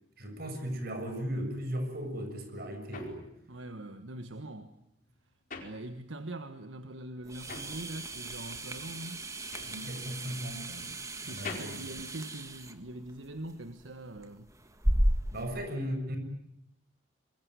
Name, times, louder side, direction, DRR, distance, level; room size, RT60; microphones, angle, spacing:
voice 1, 0.2-3.2 9.6-10.9 11.2-11.9 15.3-16.2, equal, 55° right, 7.1 m, -37 dB
sound 1, 2.2-6.5 6.7-13.0, left 4 dB, 45° left, 4.6 m, -47 dB
voice 2, 3.5-4.7 5.6-9.2 11.2-14.5, right 1 dB, 80° right, 1.5 m, -43 dB
sound 2, 7.2-15.4, right 1 dB, 15° right, 1.8 m, -35 dB
27.0 x 22.0 x 9.6 m
head